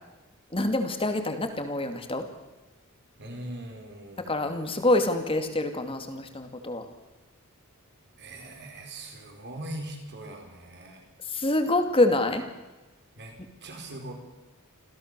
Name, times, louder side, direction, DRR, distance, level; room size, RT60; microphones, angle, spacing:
voice 1, 0.5-2.3 4.2-6.9 11.3-12.4, left 2 dB, 25° left, 7 dB, 2.4 m, -26 dB
voice 2, 3.2-4.7 8.2-11.0 13.2-14.1, right 1 dB, 50° right, 3 dB, 4.7 m, -41 dB
27.0 x 15.5 x 6.8 m, 1.1 s
head